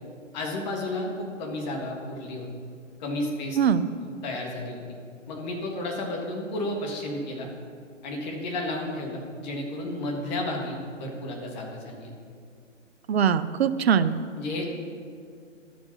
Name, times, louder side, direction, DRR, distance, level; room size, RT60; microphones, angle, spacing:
voice 1, 0.3-2.5 3.0-3.6 4.0-4.8 5.3-7.5 8.0-12.1 14.4-14.7, left 1 dB, 35° left, 0 dB, 1.7 m, -32 dB
voice 2, 3.5-3.9 13.1-14.1, right 7 dB, 55° right, 13 dB, 0.5 m, -22 dB
11.5 x 5.2 x 5.9 m, 2.2 s
figure-of-eight pair, 135°, 38 cm